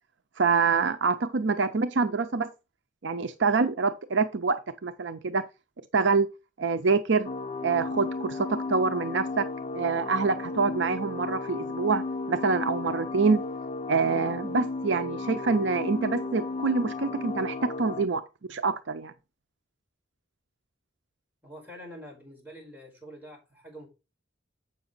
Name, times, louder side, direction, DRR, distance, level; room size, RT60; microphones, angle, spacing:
voice 1, 0.4-2.5 3.0-4.6 4.8-5.4 5.9-6.3 6.6-7.3 7.6-9.4 9.7-12.0 12.3-13.4 13.9-18.2 18.5-19.1, right 4 dB, 70° right, 0.6 m, -26 dB
sound 1, 7.2-18.1, left 3 dB, 35° left, 0.5 m, -34 dB
voice 2, 21.4-23.9, equal, 10° right, 4.9 m, -46 dB
7.9 x 6.2 x 4.0 m
head